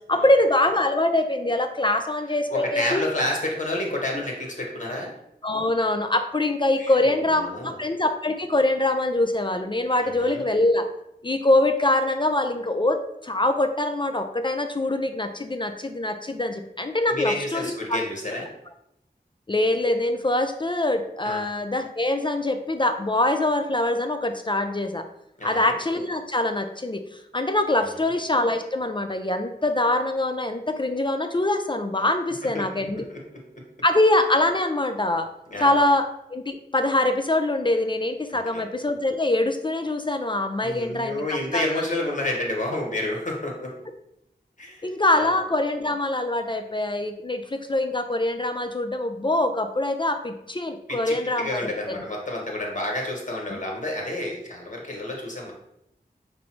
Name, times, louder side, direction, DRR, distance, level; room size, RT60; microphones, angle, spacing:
voice 1, 0.1-3.0 4.1-4.2 5.4-10.9 11.2-13.0 13.2-18.0 19.5-25.0 25.4-33.0 33.8-35.3 35.6-41.8 44.8-51.6 51.9-52.0, left 1 dB, 30° left, 6 dB, 0.3 m, -24 dB
voice 2, 2.5-5.1 6.8-7.8 10.0-10.4 17.1-18.5 21.2-21.4 25.4-25.8 28.0-28.1 32.4-32.8 33.1-33.2 33.5-33.6 35.5-35.8 38.3-38.6 40.6-43.7 44.6-44.9 45.1-45.3 50.9-55.5, left 1 dB, 45° left, -1 dB, 1.1 m, -30 dB
5.0 x 2.0 x 4.4 m, 0.81 s
wide cardioid pair, 65°, 18 cm